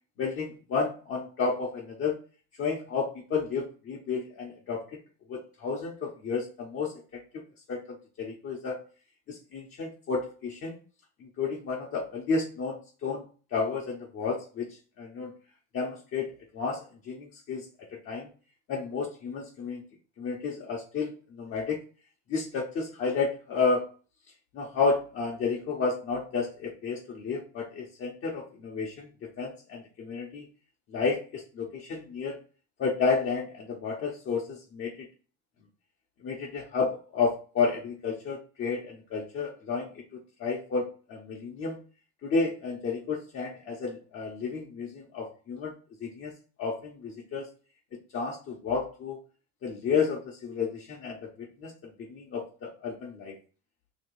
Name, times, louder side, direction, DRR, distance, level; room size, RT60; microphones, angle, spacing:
voice 1, 0.2-2.2 2.6-5.0 5.3-7.4 7.7-8.8 9.3-10.7 11.2-13.3 13.5-15.3 15.7-18.3 18.7-19.8 20.2-21.8 22.3-23.8 24.5-30.5 30.9-32.4 32.8-35.1 36.2-41.8 42.2-45.7 46.0-46.3 46.6-47.5 47.9-49.2 49.6-51.7 52.1-53.4, left 4 dB, 45° left, -3 dB, 0.9 m, -31 dB
3.0 x 2.9 x 4.6 m, 0.38 s
cardioid pair, 125°, 30 cm